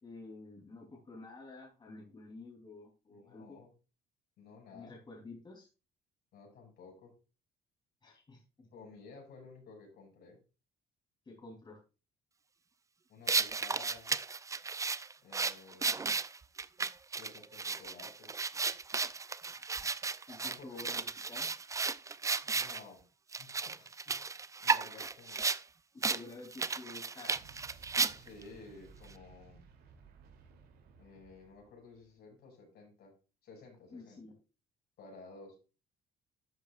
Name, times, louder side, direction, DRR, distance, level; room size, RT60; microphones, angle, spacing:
voice 1, 0.0-3.6 4.7-5.7 8.0-8.7 11.2-11.8 19.4-19.9 20.3-21.5 23.8-24.1 24.9-25.1 25.9-27.4 33.9-34.3, left 3 dB, 25° left, 0 dB, 3.3 m, -50 dB
voice 2, 3.1-3.7 4.4-5.0 6.3-7.1 8.7-10.4 13.1-14.1 15.2-16.1 17.2-18.3 20.4-20.9 22.5-23.0 23.3-23.7 24.6-25.4 28.1-29.6 31.0-33.1 33.4-34.2 35.0-35.6, left 4 dB, 65° left, 1 dB, 6.2 m, -53 dB
sound 1, 13.3-22.8 23.3-25.6 26.0-26.2 26.5-28.4, right 4 dB, 20° right, 0.5 m, -34 dB
Explosion, 27.3-32.1, right 5 dB, 70° right, 3.0 m, -58 dB
12.0 x 8.4 x 2.4 m, 0.32 s
cardioid pair, 110°, 17 cm